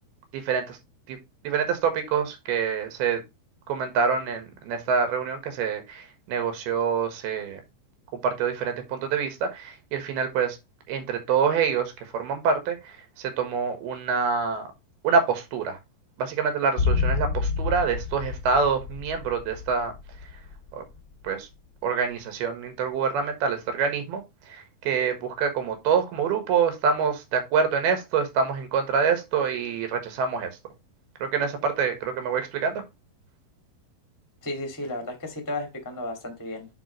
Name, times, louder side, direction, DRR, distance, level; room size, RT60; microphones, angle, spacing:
voice 1, 0.3-0.8 1.1-1.2 1.4-3.2 3.7-7.6 8.2-10.6 10.9-14.7 15.0-15.8 16.2-19.9 20.2-20.3 20.7-20.8 21.2-21.5 21.8-30.6 31.2-32.8, right 6 dB, 75° right, 6 dB, 3.2 m, -26 dB
sound 1, 16.8-21.0 21.2-21.3, left 4 dB, 30° left, 1.4 m, -29 dB
voice 2, 34.4-36.7, left 2 dB, 10° left, 4 dB, 0.8 m, -33 dB
9.1 x 4.2 x 3.0 m, 0.23 s
omnidirectional pair, 4.7 m